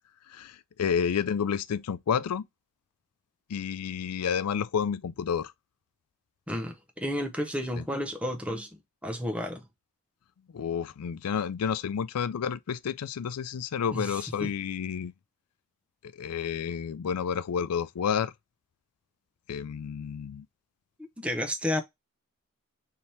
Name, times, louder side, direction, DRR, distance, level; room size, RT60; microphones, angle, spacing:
voice 1, 0.3-2.4 3.5-5.5 7.8-7.9 10.5-15.1 16.2-18.3 19.5-20.5, left 7 dB, 90° left, 0.4 m, -30 dB
voice 2, 6.5-8.7 9.0-9.6 13.9-14.5 21.2-21.8, equal, 5° right, 0.6 m, -31 dB
3.4 x 2.8 x 4.2 m
head